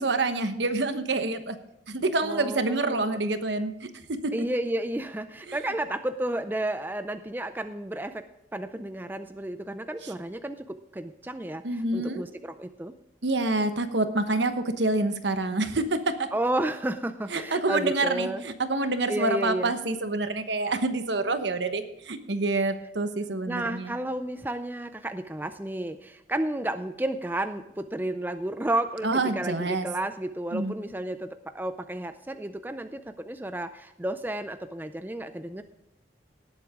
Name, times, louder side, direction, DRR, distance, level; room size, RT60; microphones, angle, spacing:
voice 1, 0.0-1.6 1.9-4.3 5.5-5.6 11.6-12.2 13.2-16.3 17.3-23.9 29.0-29.9 30.5-30.7, right 2 dB, 75° right, 9 dB, 1.1 m, -27 dB
voice 2, 2.2-3.2 4.3-8.2 8.5-12.9 16.3-18.4 19.1-19.7 23.5-35.6, right 1 dB, 10° right, 9 dB, 0.4 m, -32 dB
18.5 x 7.9 x 3.7 m, 0.86 s
head